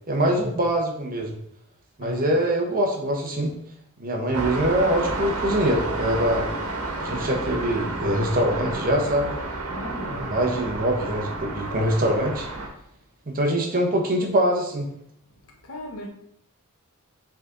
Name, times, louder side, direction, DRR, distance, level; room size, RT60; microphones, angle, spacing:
voice 1, 0.1-1.4 2.0-3.5 4.0-6.5 7.0-9.3 10.0-12.5 13.3-14.9, right 1 dB, 40° right, 1.2 m, -24 dB
sound 1, 4.3-12.7, right 2 dB, 85° right, 1.4 m, -30 dB
voice 2, 9.7-10.3 15.5-16.1, equal, 80° left, 1.2 m, -35 dB
6.4 x 3.8 x 4.0 m
head